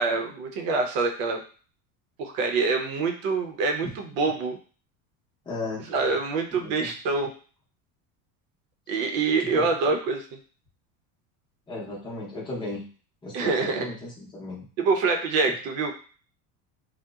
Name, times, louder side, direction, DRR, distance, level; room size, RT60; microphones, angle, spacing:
voice 1, 0.0-1.4 2.2-4.6 5.9-7.3 8.9-10.2 13.3-13.9 14.8-15.9, right 4 dB, 85° right, 3 dB, 0.7 m, -25 dB
voice 2, 5.4-5.9 6.5-6.9 9.4-9.7 11.7-12.8 13.2-14.6 15.5-15.6, left 2 dB, 10° left, -5 dB, 0.6 m, -35 dB
2.8 x 2.1 x 2.3 m, 0.40 s
cardioid pair, 140°, 40 cm